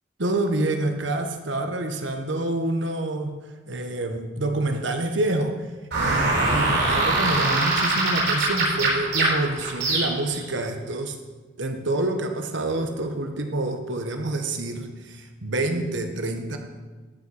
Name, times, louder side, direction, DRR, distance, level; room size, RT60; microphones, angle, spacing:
voice 1, 0.2-3.4 3.7-5.7 6.0-11.2 11.6-16.6, right 2 dB, 80° right, 5 dB, 1.3 m, -27 dB
sound 1, 5.9-10.4, right 2 dB, 60° right, 4.4 m, -23 dB
13.5 x 6.1 x 5.9 m, 1.3 s
head